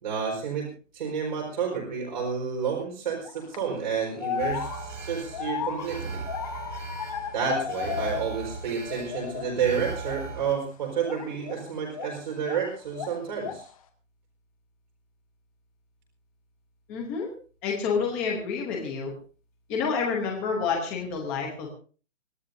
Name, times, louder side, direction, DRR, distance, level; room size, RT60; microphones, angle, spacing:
voice 1, 0.0-6.2 7.3-13.6, right 6 dB, 35° right, -1 dB, 4.7 m, -30 dB
sound 1, 3.2-3.6 4.2-8.5 8.8-9.6 10.0-10.3 11.0-12.7 12.9-13.7, left 8 dB, 25° left, 2.0 m, -35 dB
Alarm, 4.4-10.5, right 4 dB, 75° right, 6.4 m, -38 dB
voice 2, 16.9-17.3 17.6-19.1 19.7-21.7, left 5 dB, 5° left, 0 dB, 0.8 m, -28 dB
25.5 x 15.5 x 2.7 m, 0.38 s
hypercardioid pair, 175°, 39 cm